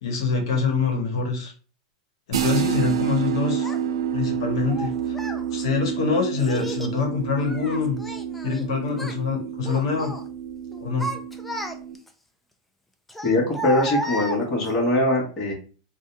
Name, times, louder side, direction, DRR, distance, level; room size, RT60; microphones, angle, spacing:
voice 1, 0.0-1.5 2.3-3.7 4.1-4.9 5.5-8.0 8.4-10.1 10.8-11.1, left 5 dB, 70° left, 2 dB, 0.8 m, -25 dB
sound 1, 2.3-11.9, right 8 dB, 90° right, 0.4 m, -29 dB
Child speech kid speaking, 3.6-3.8 4.7-5.4 6.4-7.0 7.4-8.6 8.9-9.2 9.6-10.2 10.7-12.1 13.1-14.8, equal, 5° left, 0.3 m, -33 dB
voice 2, 13.2-15.5, left 1 dB, 20° left, -3 dB, 1.2 m, -22 dB
2.6 x 2.2 x 4.0 m, 0.38 s
supercardioid pair, 150°, 3 cm